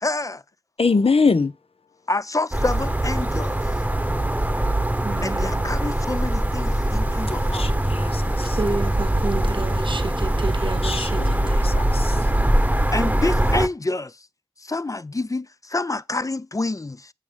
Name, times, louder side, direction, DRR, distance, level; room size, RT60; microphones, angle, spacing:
voice 1, 0.0-0.4 2.1-3.6 5.2-7.7 12.9-14.1 14.6-17.1, left 2 dB, 35° left, 0.4 m, -27 dB
voice 2, 0.8-1.5 7.0-7.2 7.5-8.6 10.8-11.3 11.6-12.2, left 4 dB, 80° left, 0.8 m, -23 dB
sound 1, 2.5-13.7, right 1 dB, 15° right, 0.9 m, -22 dB
voice 3, 5.0-5.7 8.4-11.6, right 3 dB, 60° right, 0.9 m, -31 dB
8.7 x 6.6 x 3.4 m
wide cardioid pair, 40°, 10 cm